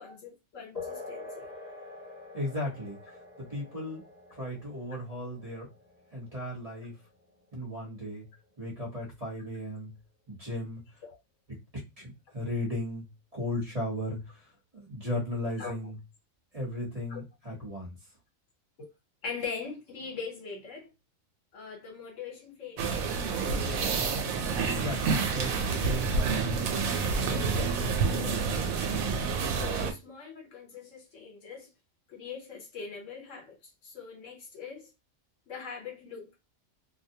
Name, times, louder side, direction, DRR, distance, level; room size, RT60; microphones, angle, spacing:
voice 1, 0.0-1.5 11.0-11.2 15.6-15.8 17.1-17.2 18.8-18.9 19.2-20.9 21.5-23.6 29.5-31.7 32.1-33.6 33.8-34.9 35.5-36.3, left 5 dB, 70° left, 1.2 m, -41 dB
sound 1, 0.7-8.8, left 3 dB, 35° left, 0.8 m, -46 dB
voice 2, 2.3-3.0 3.4-4.0 4.4-5.7 6.1-6.9 7.5-8.2 8.6-9.9 10.3-10.8 12.0-13.0 13.3-14.4 14.7-15.9 16.5-17.9 24.7-27.7 28.1-28.5, left 1 dB, 30° right, 1.0 m, -36 dB
sound 2, 22.8-29.9, right 4 dB, 85° right, 1.0 m, -28 dB
2.5 x 2.0 x 2.7 m
omnidirectional pair, 1.4 m